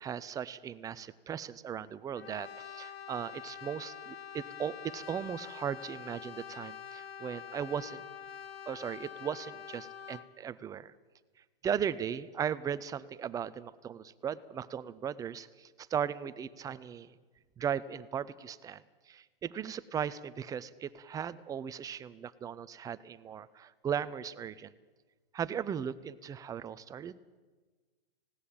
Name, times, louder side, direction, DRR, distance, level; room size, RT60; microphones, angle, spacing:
voice 1, 0.0-8.0 8.7-10.9 11.6-17.1 17.6-24.7 25.3-27.2, right 8 dB, 10° right, 15 dB, 0.5 m, -37 dB
Brass instrument, 2.1-10.3, left 8 dB, 85° left, 1.4 m, -46 dB
19.0 x 17.0 x 8.8 m, 1.3 s
hypercardioid pair, 125°, 29 cm